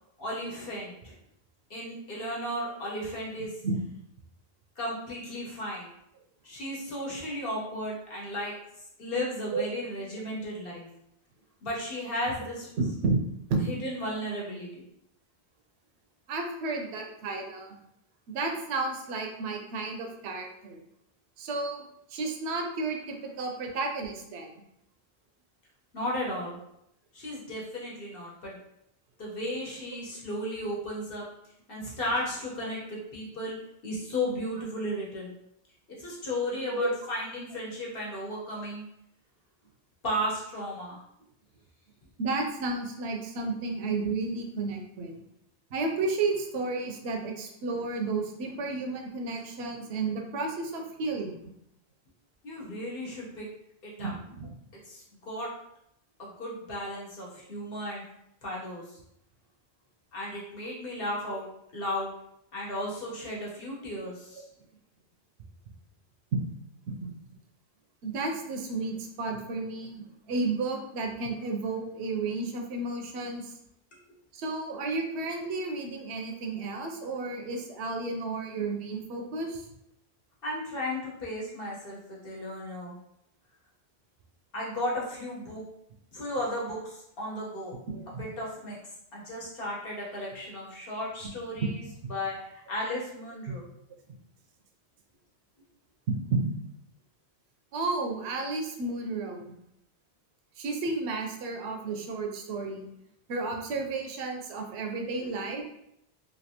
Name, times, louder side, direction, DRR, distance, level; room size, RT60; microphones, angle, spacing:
voice 1, 0.2-1.2 1.7-3.6 4.8-5.9 6.4-8.5 9.0-10.9 11.6-12.7 13.7-14.8 25.9-26.6 27.1-28.6 29.2-31.2 31.7-33.5 33.8-35.3 36.0-38.8 40.0-41.0 52.4-53.5 53.8-54.1 54.9-55.5 56.2-58.0 58.4-58.9 60.1-61.4 61.7-62.1 62.5-64.4 80.4-82.9 84.5-85.6 86.1-87.8 88.1-88.8 89.1-91.8 92.1-93.6 105.2-105.3, left 1 dB, 60° left, -4 dB, 1.2 m, -34 dB
voice 2, 12.8-13.2 13.5-13.7 16.3-17.8 18.3-20.8 21.4-21.8 22.1-24.5 29.9-30.0 36.7-36.9 42.2-45.2 45.7-51.4 54.0-54.5 66.3-66.4 66.9-67.2 68.0-73.5 74.3-79.7 87.9-88.2 91.5-91.7 92.0-92.1 93.5-93.6 96.1-96.5 97.7-99.5 100.6-102.9 103.3-105.6, right 3 dB, 80° right, 3 dB, 0.8 m, -32 dB
3.2 x 2.6 x 2.8 m, 0.77 s
omnidirectional pair, 1.1 m